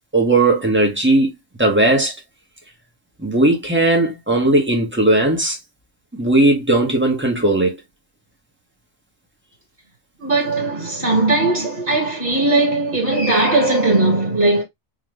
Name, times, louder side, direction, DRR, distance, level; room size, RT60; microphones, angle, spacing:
voice 1, 0.1-1.3 1.6-2.1 3.2-5.6 6.1-7.8, right 2 dB, 10° right, 1.3 m, -17 dB
voice 2, 10.2-14.6, right 2 dB, 40° right, 2.5 m, -18 dB
4.0 x 3.1 x 3.1 m
omnidirectional pair, 1.3 m